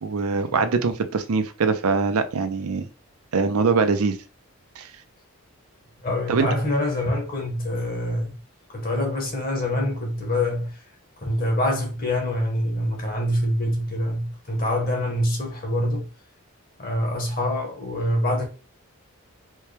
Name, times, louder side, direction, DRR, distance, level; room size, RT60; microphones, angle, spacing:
voice 1, 0.0-2.8 3.3-4.2 4.8-4.9 6.3-6.5, right 4 dB, 80° right, 0.5 m, -22 dB
voice 2, 6.0-8.4 8.7-10.8 11.2-16.1 16.8-18.4, left 1 dB, 40° left, 1.0 m, -25 dB
4.4 x 2.2 x 3.2 m
head